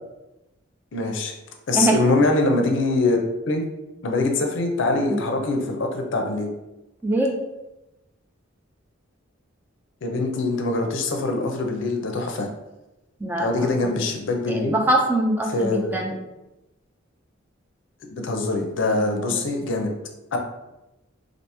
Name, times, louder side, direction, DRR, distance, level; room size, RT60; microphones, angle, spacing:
voice 1, 0.9-1.3 1.7-3.2 3.5-3.6 4.0-6.5 10.0-12.5 13.4-14.7 15.5-16.2 18.1-19.9 20.3-20.4, left 2 dB, 65° left, 3 dB, 0.5 m, -23 dB
voice 2, 7.0-7.3 13.2-13.9 14.5-16.1 19.0-19.4, right 1 dB, 10° right, 1 dB, 0.3 m, -23 dB
2.9 x 2.6 x 3.3 m, 0.98 s
head